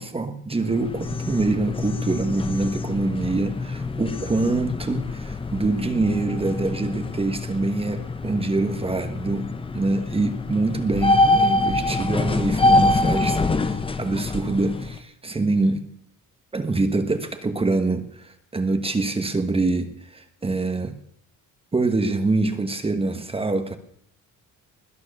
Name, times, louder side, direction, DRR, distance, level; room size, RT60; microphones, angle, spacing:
voice 1, 0.0-15.9 16.5-21.0 21.7-23.8, right 3 dB, 15° right, 8 dB, 1.2 m, -25 dB
sound 1, 0.5-15.0, left 2 dB, 15° left, 0.9 m, -25 dB
21.0 x 9.3 x 6.6 m, 0.70 s
cardioid pair, 130°, 32 cm